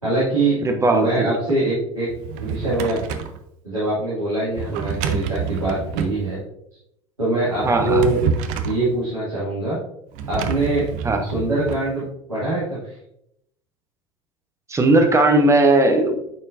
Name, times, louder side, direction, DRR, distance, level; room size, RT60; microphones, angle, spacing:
voice 1, 0.0-0.6 0.9-2.1 2.4-3.0 3.6-6.4 7.2-8.2 8.6-9.8 10.3-10.9 11.2-12.0 12.3-12.9, right 2 dB, 90° right, -10 dB, 2.1 m, -23 dB
voice 2, 0.6-1.3 7.6-8.0 11.0-11.2 14.7-16.3, right 2 dB, 15° right, 4 dB, 1.0 m, -17 dB
Drawer open or close, 2.1-3.4 4.5-6.2 7.5-8.8 10.1-11.8, right 6 dB, 50° right, 0.6 m, -28 dB
9.1 x 4.3 x 2.5 m, 0.78 s
figure-of-eight pair, 70°, 17 cm